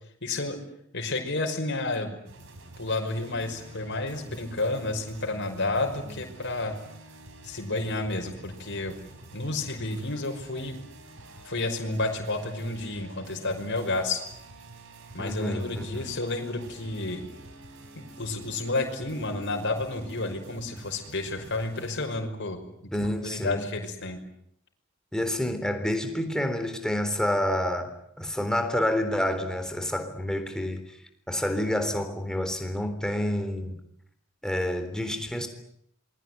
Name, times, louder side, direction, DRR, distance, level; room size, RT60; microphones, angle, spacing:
voice 1, 0.2-0.6 0.9-2.2 2.8-6.8 7.4-8.9 9.3-10.8 11.5-14.2 15.1-17.3 18.0-22.9 23.2-24.2, left 2 dB, 60° left, 3 dB, 5.5 m, -31 dB
sound 1, 2.3-22.2, right 2 dB, 65° right, 4.8 m, -48 dB
voice 2, 15.2-16.1 22.9-23.7 25.1-30.8 31.3-33.8 34.4-35.5, left 1 dB, 5° left, 7 dB, 3.8 m, -28 dB
27.5 x 22.0 x 9.4 m, 0.73 s
head